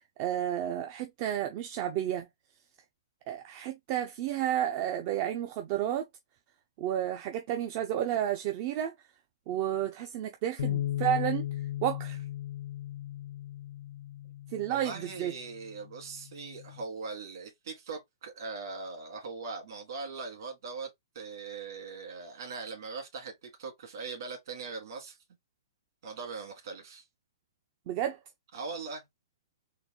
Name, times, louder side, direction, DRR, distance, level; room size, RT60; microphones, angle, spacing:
voice 1, 0.2-2.3 3.3-6.1 6.8-8.9 9.5-11.5 11.8-12.2 14.5-15.3 27.9-28.2, right 11 dB, 25° right, 0.3 m, -31 dB
Bass guitar, 10.6-16.8, left 13 dB, 50° left, 0.4 m, -37 dB
voice 2, 14.7-20.9 21.2-25.2 26.0-27.0 28.5-29.0, right 4 dB, 50° right, 1.8 m, -40 dB
3.8 x 2.3 x 3.5 m
hypercardioid pair, 165°, 3 cm